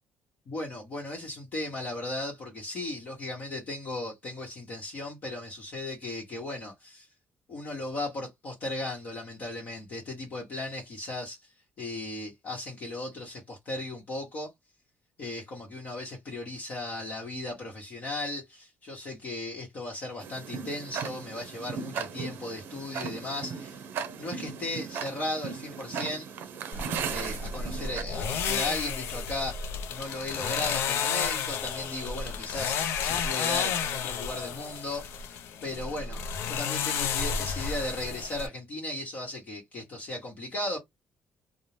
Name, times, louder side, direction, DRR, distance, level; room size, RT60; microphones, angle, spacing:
voice 1, 0.5-7.1 7.5-11.5 11.8-14.5 15.2-23.8 24.2-26.3 27.1-35.1 35.6-40.8, left 2 dB, 50° left, 1.0 m, -36 dB
Tick-tock, 20.2-28.0, right 6 dB, 60° right, 0.5 m, -37 dB
sound 1, 26.7-38.5, left 7 dB, 90° left, 0.4 m, -32 dB
2.5 x 2.0 x 3.1 m
cardioid pair, 145°, 4 cm